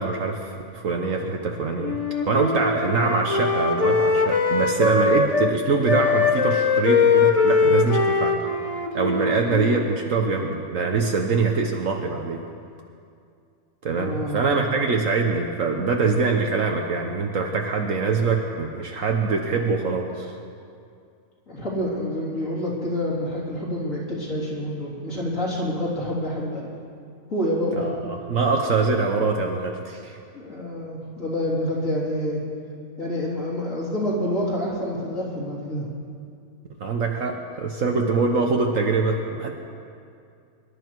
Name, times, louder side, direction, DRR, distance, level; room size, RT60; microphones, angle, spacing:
voice 1, 0.0-8.4 8.9-12.4 13.8-20.3 27.8-30.2 36.8-39.5, right 4 dB, 60° right, 2 dB, 1.3 m, -24 dB
Wind instrument woodwind instrument, 1.8-5.6 5.8-10.0, left 4 dB, 30° left, 0.7 m, -21 dB
voice 2, 14.0-14.7 21.5-26.7 27.3-27.9 30.3-32.4 33.0-35.8, left 1 dB, 60° left, -5 dB, 3.9 m, -27 dB
24.5 x 11.5 x 4.6 m, 2.4 s
omnidirectional pair, 1.6 m